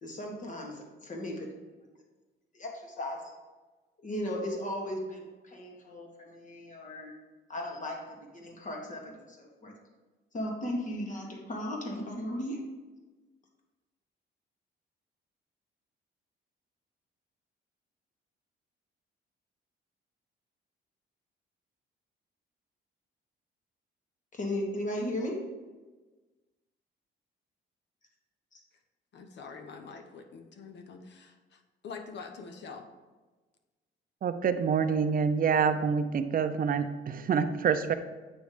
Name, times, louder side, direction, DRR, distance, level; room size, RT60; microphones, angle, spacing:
voice 1, 0.0-1.5 2.5-3.2 4.0-7.1 7.5-9.7 10.3-12.6 24.3-25.4 28.5-28.6, left 1 dB, 40° left, 0 dB, 1.6 m, -36 dB
voice 2, 29.1-32.9, left 5 dB, 65° left, 5 dB, 0.8 m, -45 dB
voice 3, 34.2-37.9, right 6 dB, 45° right, 10 dB, 0.5 m, -27 dB
8.1 x 3.1 x 5.0 m, 1.3 s
cardioid pair, 90°, 20 cm